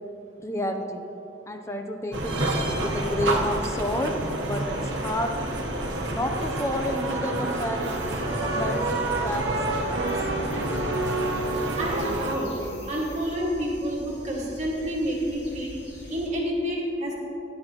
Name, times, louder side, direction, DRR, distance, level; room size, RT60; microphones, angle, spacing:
voice 1, 0.4-1.0 1.5-2.3 2.8-4.1 4.4-4.8 5.0-5.3 6.1-10.1, left 1 dB, 15° left, 5 dB, 0.6 m, -30 dB
sound 1, 2.1-12.4, right 1 dB, 85° right, 1.1 m, -28 dB
sound 2, 7.8-16.3, equal, 80° left, 2.0 m, -44 dB
voice 2, 11.8-12.5 12.9-15.8 16.1-17.1, equal, 40° right, -4 dB, 1.9 m, -28 dB
13.0 x 9.6 x 3.0 m, 2.8 s
head